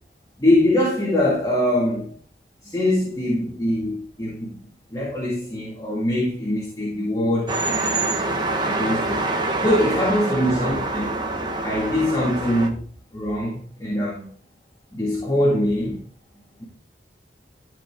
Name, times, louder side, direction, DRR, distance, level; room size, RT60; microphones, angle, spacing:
voice 1, 0.4-2.2 2.6-7.9 8.6-9.3 9.6-11.2 11.6-12.8 13.1-14.3 14.9-16.0 16.6-16.7, left 1 dB, 20° left, 2.1 m, -23 dB
sound 1, 7.5-12.7, right 2 dB, 25° right, 1.1 m, -25 dB
13.0 x 4.9 x 3.6 m
head